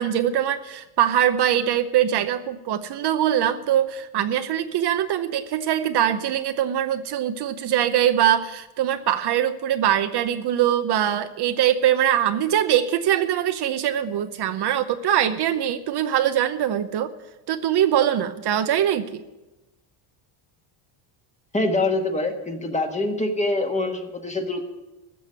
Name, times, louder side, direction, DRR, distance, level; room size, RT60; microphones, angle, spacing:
voice 1, 0.0-17.1 17.5-19.2, right 10 dB, 50° right, 9 dB, 0.9 m, -22 dB
voice 2, 21.5-24.7, left 2 dB, 15° left, 4 dB, 1.5 m, -25 dB
14.5 x 6.4 x 9.5 m, 1.0 s
cardioid pair, 120°, 50 cm